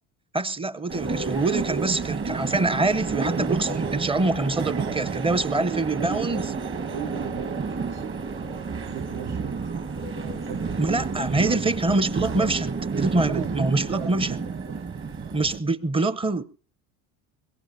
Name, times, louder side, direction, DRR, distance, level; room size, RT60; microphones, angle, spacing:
voice 1, 0.3-6.4 10.8-12.7 13.0-14.4 15.3-16.4, right 2 dB, 15° right, 0.6 m, -25 dB
sound 1, 0.9-15.6, right 4 dB, 35° right, 1.3 m, -30 dB
voice 2, 4.7-8.2 8.8-9.5 10.2-11.0 11.4-12.0 12.3-12.6 13.3-14.8 15.2-15.7, right 9 dB, 70° right, 1.1 m, -38 dB
22.0 x 17.5 x 2.6 m
supercardioid pair, 100°, 36 cm